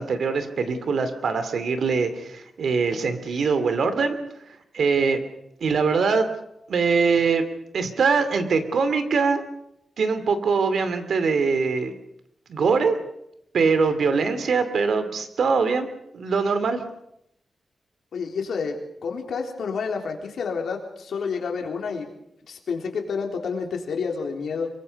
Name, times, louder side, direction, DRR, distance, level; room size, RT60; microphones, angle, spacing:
voice 1, 0.0-4.2 4.7-5.2 5.6-6.3 6.7-7.4 7.7-9.4 10.0-11.9 12.5-13.0 13.5-15.9 16.1-16.8, right 5 dB, 70° right, 10 dB, 2.6 m, -22 dB
voice 2, 18.1-18.8 19.0-22.1 22.5-24.7, left 5 dB, 85° left, 2 dB, 3.8 m, -29 dB
25.0 x 23.5 x 5.4 m, 0.77 s
wide cardioid pair, 140°, 0 cm